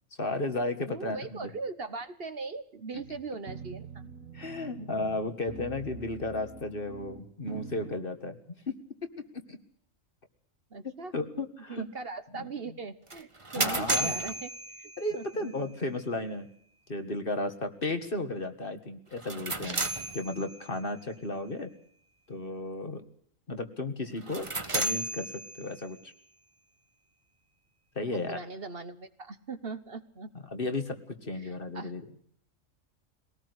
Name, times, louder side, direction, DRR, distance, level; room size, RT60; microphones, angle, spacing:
voice 1, 0.2-1.5 4.3-8.8 9.3-9.6 11.1-11.9 12.4-12.5 13.5-14.2 15.0-16.5 16.9-19.8 20.1-21.7 22.3-23.1 23.5-26.1 28.0-28.4 30.5-32.0, left 2 dB, 45° left, 8 dB, 2.0 m, -34 dB
voice 2, 0.8-4.1 4.8-5.1 10.7-11.1 11.7-15.7 28.1-30.3 31.4-31.9, right 4 dB, 50° right, 11 dB, 1.3 m, -40 dB
sound 1, 2.9-8.0, right 5 dB, 90° right, 1.8 m, -45 dB
sound 2, 13.1-15.3 19.1-20.8 24.2-26.0, right 2 dB, 25° right, 1.5 m, -33 dB
22.5 x 18.5 x 8.2 m, 0.63 s
omnidirectional pair, 1.3 m